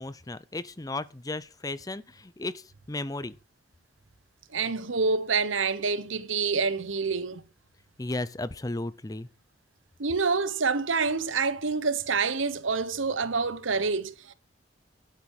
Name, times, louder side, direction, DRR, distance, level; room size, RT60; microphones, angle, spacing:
voice 1, 0.0-3.4 8.0-9.3, left 2 dB, 20° left, 0.6 m, -35 dB
voice 2, 4.5-7.4 10.0-14.3, right 4 dB, 85° right, 1.1 m, -27 dB
12.0 x 8.8 x 4.8 m
head